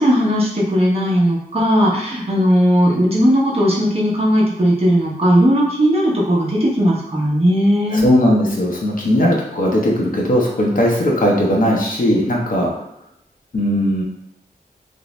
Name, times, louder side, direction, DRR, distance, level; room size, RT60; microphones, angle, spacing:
voice 1, 0.0-8.0, equal, 40° right, -5 dB, 0.8 m, -16 dB
voice 2, 7.9-12.7 13.5-14.0, equal, 60° left, -2 dB, 0.7 m, -17 dB
2.5 x 2.0 x 3.0 m, 0.76 s
wide cardioid pair, 70°, 16 cm